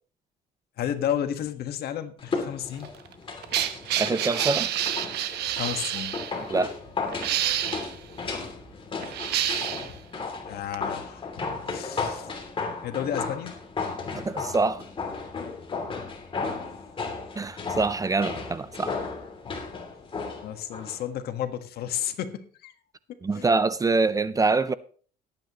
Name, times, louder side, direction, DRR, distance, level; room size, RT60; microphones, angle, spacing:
voice 1, 0.8-2.9 5.5-6.2 9.9-10.0 10.5-12.3 12.8-13.6 20.4-22.7 23.3-23.4, left 10 dB, 70° left, 1.5 m, -32 dB
sound 1, 2.2-21.0 21.3-21.4, left 4 dB, 30° left, 2.8 m, -34 dB
sound 2, 2.8-6.3 7.1-7.9 9.0-9.9 10.7-10.8, right 11 dB, 75° right, 1.1 m, -28 dB
voice 2, 4.0-4.7 6.5-6.7 14.2-14.9 17.4-18.9 23.2-24.7, right 3 dB, 20° right, 0.5 m, -25 dB
19.5 x 9.0 x 3.0 m
cardioid pair, 110°, 17 cm